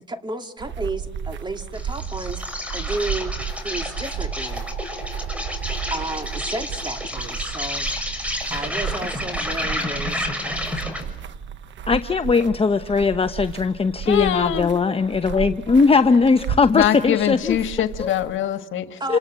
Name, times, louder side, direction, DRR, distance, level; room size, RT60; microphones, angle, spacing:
voice 1, 0.0-2.4 2.7-3.4 3.6-4.6 5.5-7.9 8.2-10.8 19.0-19.2, right 2 dB, 20° right, 6 dB, 2.7 m, -32 dB
sound 1, 0.6-18.4, right 7 dB, 70° right, 1.4 m, -34 dB
Insect, 1.7-11.1, left 1 dB, 5° right, 6.5 m, -30 dB
voice 2, 11.9-17.6 18.0-18.1 19.1-19.2, left 4 dB, 30° left, 8 dB, 1.0 m, -19 dB
voice 3, 14.0-14.7 16.7-19.0, left 11 dB, 80° left, 9 dB, 1.7 m, -23 dB
28.0 x 27.0 x 7.5 m, 1.1 s
cardioid pair, 90°, 20 cm